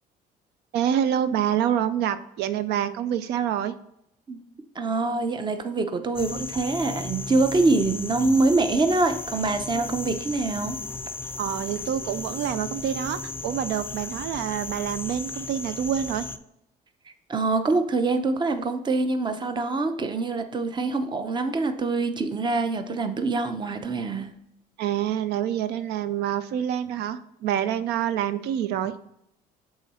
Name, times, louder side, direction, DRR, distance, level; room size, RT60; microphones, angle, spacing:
voice 1, 0.7-3.7 11.4-16.3 24.8-28.9, right 10 dB, 80° right, 12 dB, 0.4 m, -27 dB
voice 2, 4.8-10.8 17.3-24.3, right 3 dB, 25° right, 8 dB, 0.7 m, -25 dB
sound 1, 6.2-16.4, left 3 dB, 15° left, 0.3 m, -35 dB
7.2 x 3.7 x 4.2 m, 0.79 s
cardioid pair, 110°, 17 cm